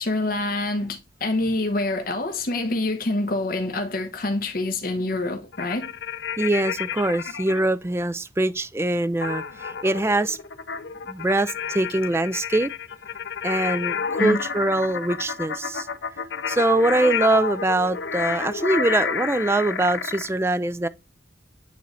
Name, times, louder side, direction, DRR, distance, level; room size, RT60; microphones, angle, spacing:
voice 1, 0.0-5.9 14.2-14.4, left 2 dB, 50° left, 1.0 m, -26 dB
sound 1, 5.5-7.6 9.2-20.3, left 6 dB, 65° left, 0.6 m, -30 dB
voice 2, 6.4-10.4 11.1-12.7 13.4-15.9 16.5-20.9, right 2 dB, 15° right, 0.3 m, -23 dB
9.3 x 3.1 x 4.1 m
head